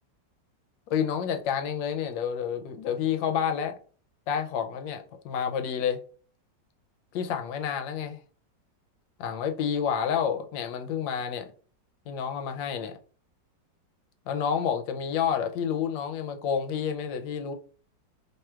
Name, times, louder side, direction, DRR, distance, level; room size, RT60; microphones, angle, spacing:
voice 1, 0.9-3.8 4.3-6.0 7.1-8.2 9.2-11.5 12.1-13.0 14.3-17.5, left 8 dB, 85° left, 1.4 m, -29 dB
3.2 x 2.4 x 4.3 m
omnidirectional pair, 2.0 m